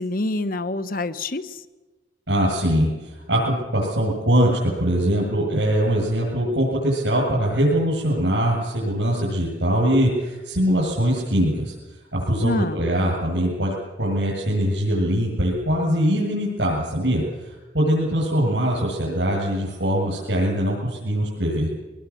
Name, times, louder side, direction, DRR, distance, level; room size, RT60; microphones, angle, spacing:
voice 1, 0.0-1.6 12.4-12.9, left 2 dB, 50° left, 12 dB, 1.1 m, -26 dB
voice 2, 2.3-11.7 12.1-21.7, equal, 80° right, -5 dB, 7.9 m, -22 dB
24.0 x 21.0 x 7.5 m, 1.2 s
head